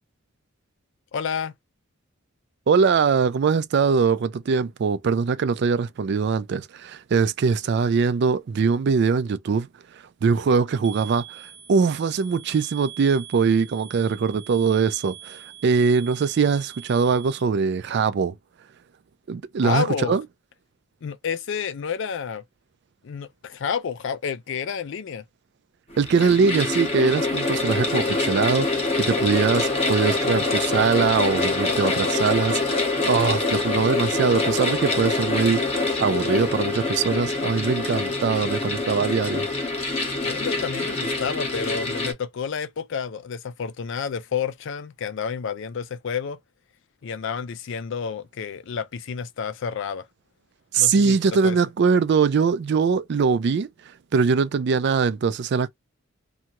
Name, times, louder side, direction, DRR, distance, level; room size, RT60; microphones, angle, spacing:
voice 1, 1.1-1.5 19.6-20.2 21.0-22.4 23.0-25.2 40.2-46.4 47.0-50.1 50.8-51.6, left 6 dB, 60° left, 0.4 m, -30 dB
voice 2, 2.7-9.7 10.2-18.3 19.3-20.2 26.0-39.5 50.7-53.7 54.1-55.7, right 5 dB, 50° right, 0.3 m, -22 dB
sound 1, 10.8-17.4, right 11 dB, 30° right, 0.8 m, -43 dB
sound 2, 25.9-42.1, left 3 dB, 30° left, 0.8 m, -25 dB
2.7 x 2.3 x 2.9 m
head